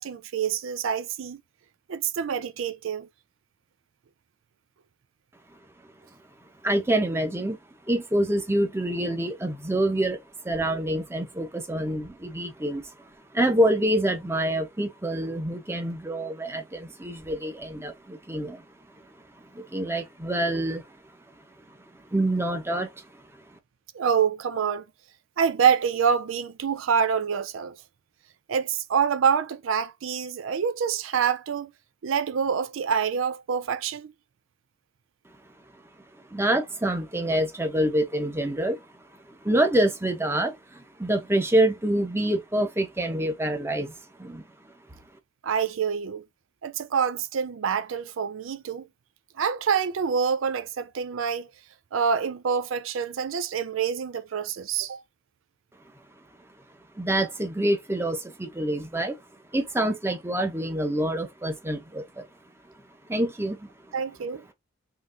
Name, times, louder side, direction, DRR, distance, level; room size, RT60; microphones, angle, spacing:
voice 1, 0.0-1.4 1.9-3.1 23.9-24.8 25.4-27.8 28.5-31.7 32.0-34.1 45.4-46.2 46.6-48.9 49.4-51.5 51.9-55.0 63.9-64.4, right 7 dB, 85° right, 0.4 m, -26 dB
voice 2, 6.6-7.6 7.9-10.2 10.4-12.9 13.3-18.6 19.5-20.8 22.1-23.0 36.3-38.8 39.3-43.9 44.2-44.4 57.0-59.2 59.5-62.2 63.1-63.7, right 1 dB, 15° right, 0.7 m, -26 dB
3.9 x 3.1 x 2.5 m
head